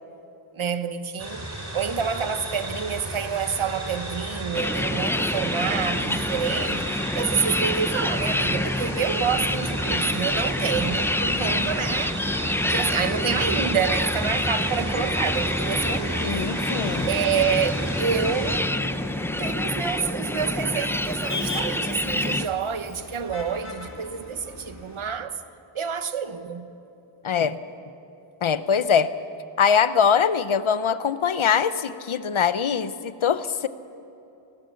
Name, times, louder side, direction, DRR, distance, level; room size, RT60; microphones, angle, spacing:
voice 1, 0.5-1.5 1.7-12.3 12.6-16.2 17.0-18.7 19.4-25.4 25.7-26.7, right 6 dB, 75° right, 1.1 m, -28 dB
sound 1, 1.2-18.6, right 1 dB, 35° right, 5.1 m, -33 dB
sound 2, 4.5-22.5, left 1 dB, 5° left, 0.5 m, -27 dB
Motor vehicle (road), 9.3-25.0, left 2 dB, 35° left, 3.0 m, -40 dB
voice 2, 16.2-17.1 27.2-27.6 28.4-29.1 29.6-33.7, left 7 dB, 75° left, 0.9 m, -22 dB
19.5 x 19.0 x 7.1 m
wide cardioid pair, 80°, 49 cm